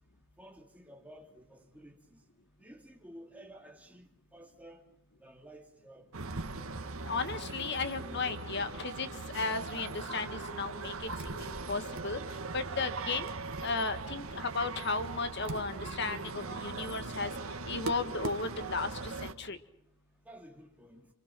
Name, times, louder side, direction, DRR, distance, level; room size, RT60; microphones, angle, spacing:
voice 1, 0.4-2.2 2.6-4.8 5.2-6.2 20.2-21.1, right 1 dB, 5° right, 2.7 m, -53 dB
sound 1, 6.1-19.3, right 3 dB, 90° right, 1.7 m, -40 dB
voice 2, 7.1-9.1 9.3-12.2 12.5-13.3 13.6-17.3 17.7-19.6, left 4 dB, 55° left, 1.6 m, -35 dB
27.0 x 26.5 x 6.1 m
head